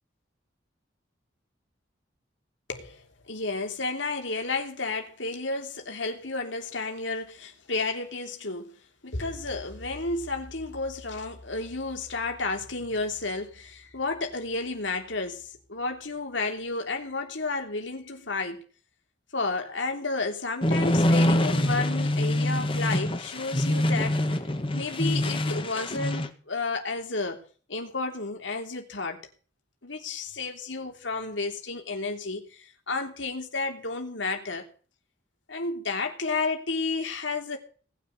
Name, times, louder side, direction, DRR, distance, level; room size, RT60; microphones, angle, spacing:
voice 1, 2.7-8.7 9.0-18.6 19.3-24.2 24.7-27.4 27.7-29.2 29.8-34.6 35.5-37.6, left 3 dB, 80° left, 3.2 m, -32 dB
sound 1, 20.6-26.3, left 1 dB, 30° left, 1.8 m, -25 dB
19.0 x 6.6 x 9.5 m
head